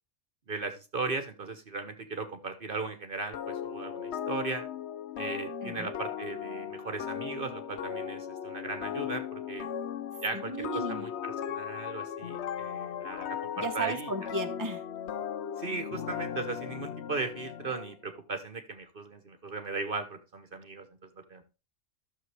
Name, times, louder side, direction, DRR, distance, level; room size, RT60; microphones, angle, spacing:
voice 1, 0.5-4.6 5.2-9.7 10.2-14.1 15.6-21.4, right 3 dB, 45° right, 8 dB, 1.2 m, -37 dB
sound 1, 3.3-17.9, left 9 dB, 65° left, 0.8 m, -37 dB
voice 2, 10.3-11.1 13.6-14.8, right 3 dB, 15° right, 5 dB, 1.1 m, -35 dB
12.5 x 6.8 x 3.3 m, 0.31 s
omnidirectional pair, 1.3 m